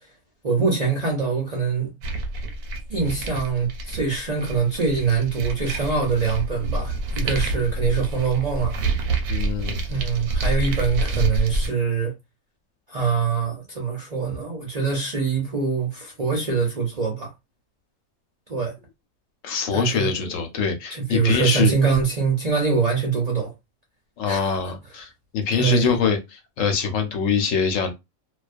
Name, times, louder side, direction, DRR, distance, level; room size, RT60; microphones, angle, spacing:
voice 1, 0.4-1.9 2.9-8.8 9.9-12.1 12.9-17.3 18.5-18.7 19.7-20.2 20.9-23.5 24.2-24.7 25.5-25.9, right 5 dB, 50° right, 0.5 m, -24 dB
sound 1, 2.0-11.7, right 2 dB, 90° right, 1.0 m, -27 dB
voice 2, 9.3-9.8 19.4-21.7 24.2-27.9, left 6 dB, 70° left, 1.0 m, -24 dB
2.3 x 2.2 x 2.4 m
omnidirectional pair, 1.4 m